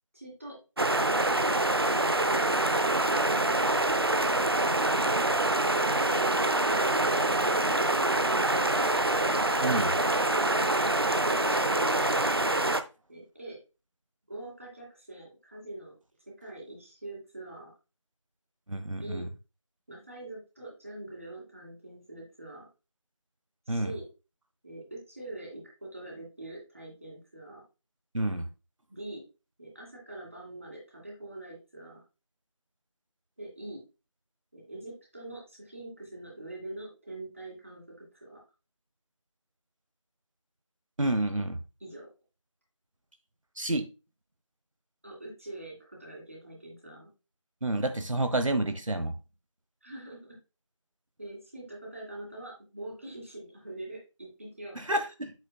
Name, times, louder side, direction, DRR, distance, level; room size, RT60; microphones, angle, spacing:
voice 1, 0.1-0.6 0.9-2.5 5.9-8.9 13.1-13.6 14.3-15.9 16.4-17.7 19.0-19.2 19.9-22.7 23.7-24.1 24.6-27.6 28.9-29.2 29.6-32.0 33.4-33.8 34.5-38.4 41.8-42.1 45.0-47.1 49.8-50.4 51.2-55.0, right 1 dB, 25° right, -2 dB, 2.4 m, -44 dB
sound 1, 0.8-12.8, right 2 dB, 50° right, 0.6 m, -25 dB
voice 2, 9.6-9.9 11.5-11.6 18.7-19.3 23.7-23.9 28.1-28.4 41.0-41.6 43.6-43.9 47.6-49.1 54.8-55.3, right 1 dB, 80° right, 8 dB, 1.0 m, -29 dB
8.3 x 6.8 x 2.3 m, 0.29 s
figure-of-eight pair, 180°, 16 cm